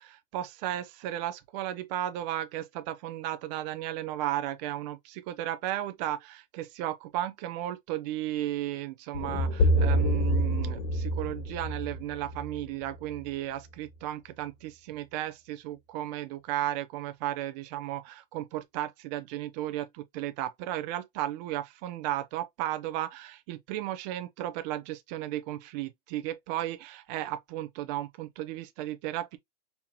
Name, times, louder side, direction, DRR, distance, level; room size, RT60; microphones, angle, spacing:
voice 1, 0.0-29.4, right 13 dB, 45° right, 0.7 m, -34 dB
sound 1, 9.1-13.3, equal, 70° left, 1.5 m, -27 dB
5.6 x 2.9 x 2.3 m
hypercardioid pair, 120°, 30 cm